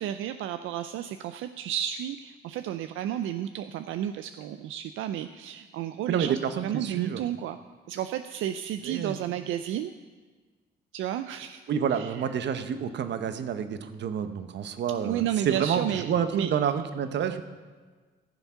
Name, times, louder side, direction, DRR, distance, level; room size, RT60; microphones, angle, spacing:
voice 1, 0.0-6.4 6.6-7.6 7.9-9.9 10.9-11.6 11.9-12.2 15.0-16.5, right 11 dB, 85° right, 9 dB, 0.4 m, -32 dB
voice 2, 6.1-7.2 8.8-9.2 11.7-17.4, right 8 dB, 65° right, 9 dB, 0.9 m, -29 dB
15.0 x 7.1 x 5.6 m, 1.4 s
cardioid pair, 90°, 20 cm